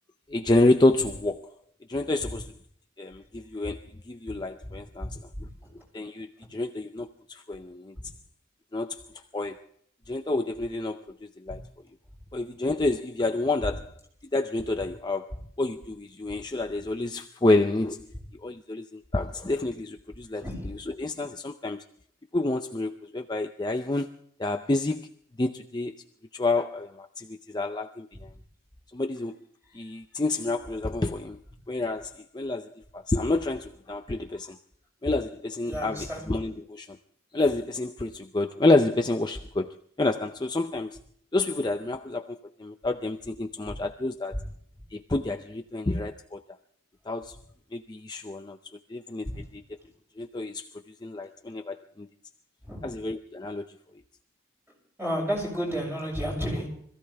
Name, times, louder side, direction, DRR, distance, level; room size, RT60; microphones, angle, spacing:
voice 1, 0.3-1.5 1.9-2.5 3.0-5.2 5.9-7.9 8.7-9.0 9.3-9.6 10.1-11.6 12.3-13.9 14.3-18.1 18.4-21.8 22.3-24.1 24.4-25.1 25.4-25.9 26.3-28.1 28.9-29.4 29.7-31.4 31.7-34.6 35.0-37.0 37.3-41.0 41.3-44.4 44.9-46.4 47.1-47.4 47.7-48.6 48.9-49.6 50.2-50.7 51.0-52.1 52.8-53.7, left 2 dB, 20° left, 0.5 m, -28 dB
voice 2, 35.7-36.2 49.3-49.4 52.6-52.9 55.0-56.7, equal, 10° right, 6.8 m, -31 dB
26.0 x 15.5 x 3.4 m
head